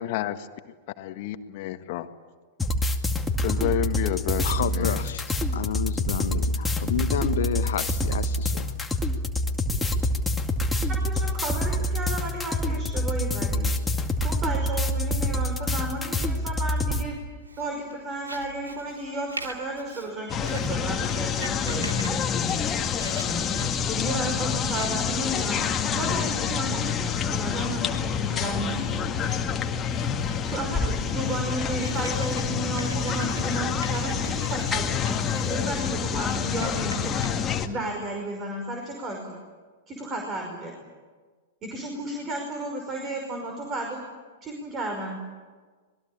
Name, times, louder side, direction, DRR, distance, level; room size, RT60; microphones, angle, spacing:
voice 1, 0.0-0.4 1.0-2.1 3.4-5.0, left 13 dB, 50° left, 9 dB, 1.6 m, -30 dB
sound 1, 2.6-17.0, left 1 dB, 10° left, 2.3 m, -26 dB
voice 2, 4.4-8.7, left 9 dB, 70° left, 11 dB, 1.4 m, -30 dB
voice 3, 11.0-13.8 14.2-17.2 17.6-22.3 24.0-29.1 30.5-37.3 37.6-39.4 39.9-40.8 41.6-44.0 44.4-45.2, right 2 dB, 30° right, 2 dB, 5.6 m, -33 dB
Writing, 17.4-37.3, right 2 dB, 90° right, 2.6 m, -44 dB
sound 2, 20.3-37.7, left 7 dB, 25° left, 2.0 m, -27 dB
26.5 x 21.0 x 8.8 m, 1.4 s
hypercardioid pair, 105°, 0 cm